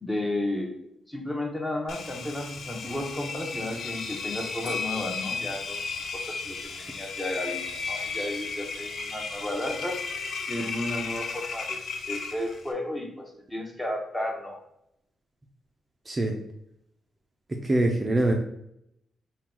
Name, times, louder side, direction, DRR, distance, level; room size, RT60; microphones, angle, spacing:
voice 1, 0.0-0.7 1.1-7.6 7.9-10.0 10.5-11.8 12.1-14.6, left 1 dB, 10° left, 1 dB, 0.8 m, -33 dB
Engine, 1.9-12.7, left 5 dB, 55° left, 0.5 m, -34 dB
sound 1, 4.6-7.5 8.0-8.5, equal, 70° left, 1.3 m, -44 dB
voice 2, 16.1-16.4 17.5-18.3, right 1 dB, 20° right, 1 dB, 0.4 m, -24 dB
3.7 x 2.2 x 4.3 m, 0.78 s
cardioid pair, 135°, 0 cm